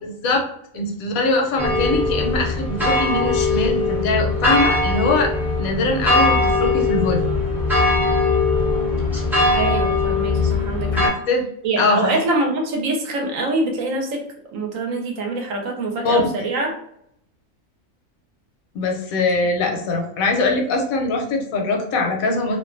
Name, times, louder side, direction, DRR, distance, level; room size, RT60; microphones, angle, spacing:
voice 1, 0.0-0.5 0.7-5.3 5.6-7.3 10.9-11.4 11.8-12.2 16.0-16.3 18.7-22.6, left 2 dB, 80° left, 2 dB, 1.0 m, -22 dB
sound 1, 1.6-11.1, left 3 dB, 5° right, 0.4 m, -20 dB
voice 2, 9.5-11.2 11.6-14.2 14.5-16.7, right 2 dB, 70° right, 1 dB, 1.0 m, -24 dB
2.5 x 2.2 x 2.4 m, 0.71 s
omnidirectional pair, 1.5 m